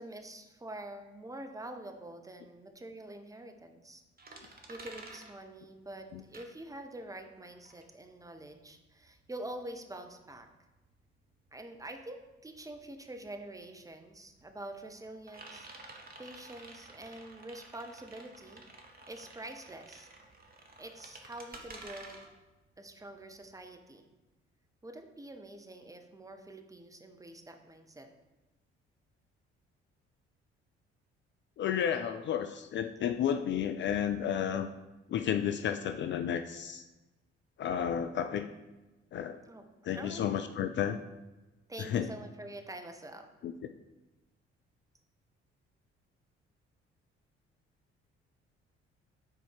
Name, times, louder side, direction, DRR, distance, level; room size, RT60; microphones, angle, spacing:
voice 1, 0.0-4.0 4.4-10.5 11.5-18.6 19.1-20.1 20.8-22.3 22.8-24.1 24.8-28.1 39.5-39.6 39.9-40.3 41.7-43.3, right 1 dB, 10° right, 5 dB, 0.7 m, -46 dB
sound 1, 4.2-7.1 7.4-23.8, right 2 dB, 25° right, 1.1 m, -52 dB
voice 2, 31.6-34.7 35.1-36.8 37.6-38.5 39.1-39.4 39.8-41.0 41.8-42.1 43.4-43.5, left 9 dB, 35° left, 9 dB, 0.4 m, -32 dB
6.6 x 4.3 x 4.6 m, 1.1 s
figure-of-eight pair, 45°, 33 cm